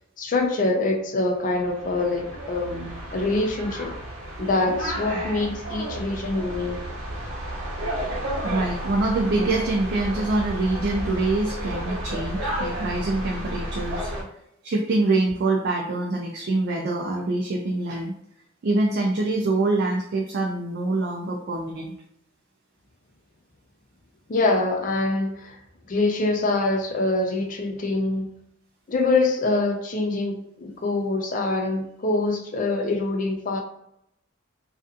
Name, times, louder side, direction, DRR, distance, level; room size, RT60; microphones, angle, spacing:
voice 1, 0.2-4.0 4.4-6.8 24.3-25.6 25.9-28.3 28.9-33.6, left 2 dB, 40° left, 2 dB, 0.4 m, -25 dB
sound 1, 1.5-14.2, right 1 dB, 85° right, 0.8 m, -32 dB
voice 2, 8.4-14.1 14.6-18.1 18.6-21.9, right 2 dB, 50° right, 0 dB, 0.3 m, -25 dB
2.5 x 2.4 x 2.3 m, 0.77 s
head